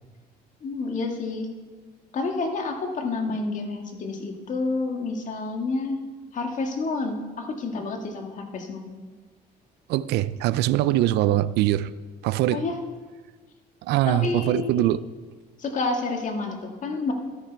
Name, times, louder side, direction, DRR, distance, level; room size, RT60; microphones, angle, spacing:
voice 1, 0.6-1.5 2.1-6.0 6.3-8.9 12.5-12.7 14.0-14.9 15.6-17.1, left 3 dB, 50° left, 1.8 m, -29 dB
voice 2, 9.9-11.9 12.2-12.6 13.8-15.0, right 14 dB, 80° right, 0.4 m, -22 dB
12.5 x 10.5 x 4.6 m
cardioid pair, 110°, 17 cm